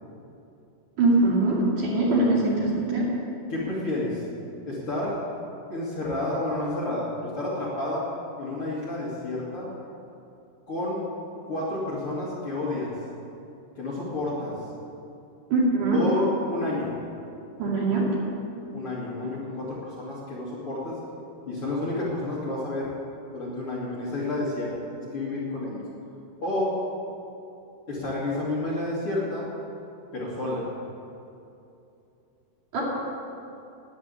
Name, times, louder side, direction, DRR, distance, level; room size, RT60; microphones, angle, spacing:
voice 1, 1.0-3.1 15.5-16.0 17.6-18.1 32.7-32.8, right 2 dB, 55° right, -4 dB, 3.7 m, -22 dB
voice 2, 3.5-4.2 4.7-5.2 5.7-8.0 8.4-9.7 10.7-11.0 11.5-12.9 13.8-14.5 15.9-16.9 18.7-21.0 21.5-22.9 23.3-25.8 26.4-26.7 27.9-29.4 30.1-30.6, left 2 dB, 40° left, -7 dB, 2.5 m, -30 dB
11.5 x 10.0 x 8.4 m, 2.8 s
omnidirectional pair, 4.7 m